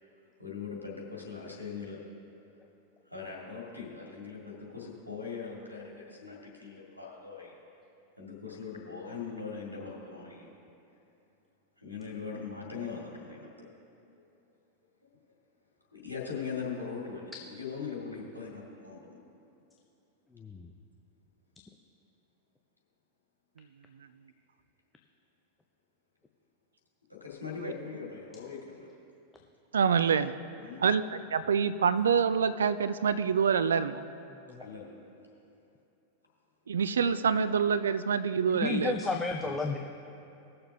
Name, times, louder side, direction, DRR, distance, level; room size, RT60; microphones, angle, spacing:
voice 1, 0.4-2.0 3.1-7.6 8.2-10.5 11.8-13.5 15.9-19.2 27.1-28.9 30.6-30.9 34.6-35.1 39.4-39.8, left 5 dB, 90° left, -1 dB, 2.0 m, -41 dB
voice 2, 20.4-20.7 34.5-34.6 38.6-39.8, left 4 dB, 10° left, 2 dB, 0.6 m, -32 dB
voice 3, 29.7-30.3 30.8-34.0 36.7-39.0, right 6 dB, 70° right, 13 dB, 0.3 m, -26 dB
20.0 x 6.8 x 2.7 m, 2.7 s
figure-of-eight pair, 90°, 0 cm